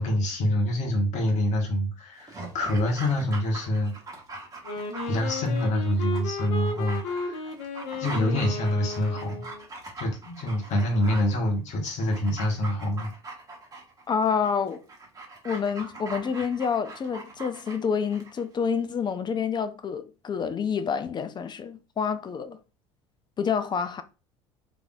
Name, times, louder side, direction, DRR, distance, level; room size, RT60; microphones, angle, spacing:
voice 1, 0.0-3.9 5.1-7.5 8.0-9.4 10.0-13.1, left 1 dB, 50° left, 1.4 m, -26 dB
Dog, 2.2-18.4 18.7-18.8, right 2 dB, 25° right, 1.3 m, -42 dB
Wind instrument woodwind instrument, 4.6-9.7, left 3 dB, 80° left, 0.8 m, -34 dB
voice 2, 14.1-14.8 15.4-22.6 23.4-24.0, left 6 dB, 30° left, 0.5 m, -28 dB
3.5 x 3.5 x 2.4 m
hypercardioid pair, 75°, 15 cm